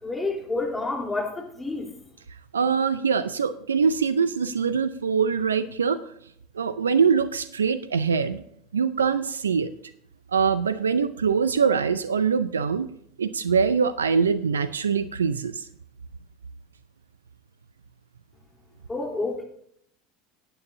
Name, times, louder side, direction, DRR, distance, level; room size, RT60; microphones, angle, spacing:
voice 1, 0.0-1.9 18.9-19.4, left 3 dB, 10° left, -1 dB, 3.5 m, -29 dB
voice 2, 2.5-6.0 6.5-8.4 8.7-9.7 10.3-12.9 13.2-15.7, right 6 dB, 85° right, 14 dB, 0.5 m, -23 dB
17.5 x 9.1 x 2.7 m, 0.69 s
hypercardioid pair, 80°, 0 cm